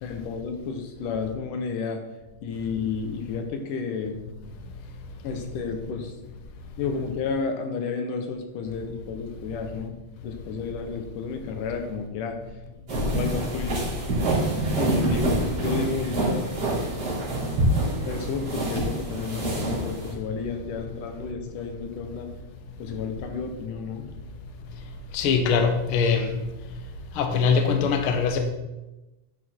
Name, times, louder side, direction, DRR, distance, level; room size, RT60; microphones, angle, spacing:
voice 1, 0.0-2.0 2.4-4.3 5.2-6.1 6.8-10.0 10.2-12.4 13.1-13.8 14.8-16.5 18.0-22.3 22.8-24.1, left 5 dB, 85° left, 5 dB, 2.7 m, -31 dB
sound 1, 12.9-20.1, right 1 dB, 45° right, 4.1 m, -26 dB
voice 2, 25.1-26.4 27.1-28.4, left 5 dB, 65° left, 5 dB, 1.4 m, -22 dB
10.5 x 6.5 x 4.5 m, 1.1 s
omnidirectional pair, 3.7 m